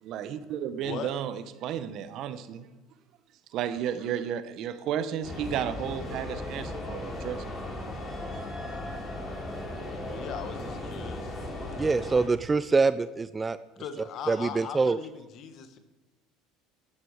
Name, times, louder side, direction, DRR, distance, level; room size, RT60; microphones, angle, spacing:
voice 1, 0.0-2.7 3.5-7.5, right 9 dB, 60° right, 12 dB, 0.9 m, -33 dB
sound 1, 5.2-12.3, left 1 dB, 30° left, 3.1 m, -37 dB
voice 2, 10.0-11.4 13.8-15.8, left 7 dB, 55° left, 9 dB, 1.3 m, -39 dB
voice 3, 11.8-13.6 14.3-15.0, right 4 dB, 20° right, 14 dB, 0.3 m, -25 dB
12.0 x 10.0 x 4.9 m, 1.1 s
supercardioid pair, 100°, 0 cm